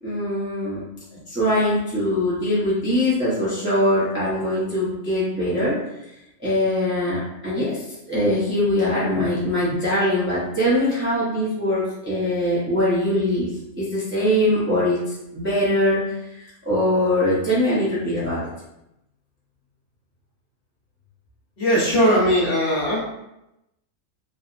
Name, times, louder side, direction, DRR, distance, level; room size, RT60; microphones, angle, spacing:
voice 1, 0.0-0.8 1.3-5.8 6.4-13.5 13.8-18.4, left 1 dB, 15° right, -10 dB, 0.5 m, -22 dB
voice 2, 21.6-23.0, equal, 45° left, -7 dB, 0.9 m, -19 dB
3.2 x 2.0 x 2.5 m, 0.87 s
omnidirectional pair, 1.5 m